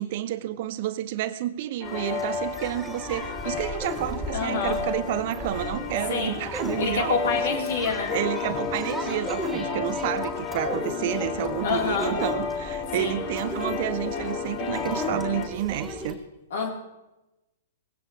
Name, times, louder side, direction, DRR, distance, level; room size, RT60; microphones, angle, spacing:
voice 1, 0.0-7.6 8.1-16.2, right 13 dB, 45° right, 1.0 m, -30 dB
sound 1, 1.8-15.5, left 6 dB, 30° left, 1.6 m, -32 dB
sound 2, 1.8-16.1, left 1 dB, ahead, 3.6 m, -36 dB
voice 2, 4.3-4.8 6.1-6.4 6.8-8.1 11.6-12.1 13.0-13.2 16.5-16.7, left 5 dB, 55° left, 4.1 m, -27 dB
20.0 x 16.5 x 3.4 m
figure-of-eight pair, 110°, 0 cm